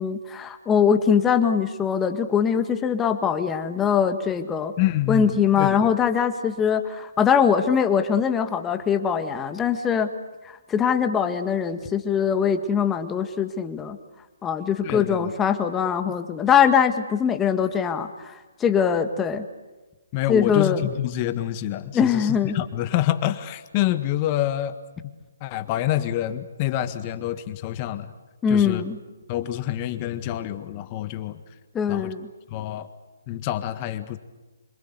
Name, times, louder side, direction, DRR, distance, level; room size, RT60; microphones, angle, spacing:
voice 1, 0.0-4.7 5.1-10.1 10.4-14.0 14.4-19.4 20.3-20.9 21.9-22.6 28.4-29.0 31.7-32.3, left 7 dB, 15° left, 8 dB, 1.7 m, -22 dB
voice 2, 4.8-5.9 14.8-15.3 20.1-24.7 25.4-28.1 28.5-28.8 29.3-31.4 31.9-32.1 32.5-32.9 33.3-34.2, left 13 dB, 30° left, 11 dB, 1.7 m, -27 dB
27.0 x 25.0 x 8.2 m, 1.2 s
figure-of-eight pair, 135°, 0 cm